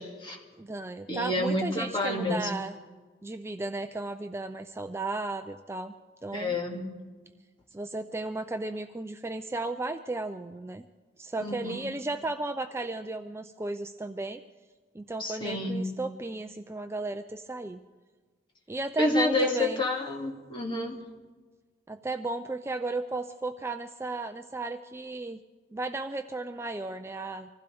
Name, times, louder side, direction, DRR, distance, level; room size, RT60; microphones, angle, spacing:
voice 1, 0.0-0.4 1.1-2.5 6.3-6.8 11.4-11.8 15.2-15.9 19.0-21.0, left 2 dB, 30° left, -1 dB, 2.4 m, -29 dB
voice 2, 0.6-2.8 3.2-5.9 6.2-6.6 7.7-10.8 11.2-14.4 14.9-17.8 18.7-19.8 21.9-25.4 25.7-27.5, right 2 dB, 15° right, 8 dB, 0.4 m, -34 dB
25.5 x 15.5 x 3.5 m, 1.4 s
head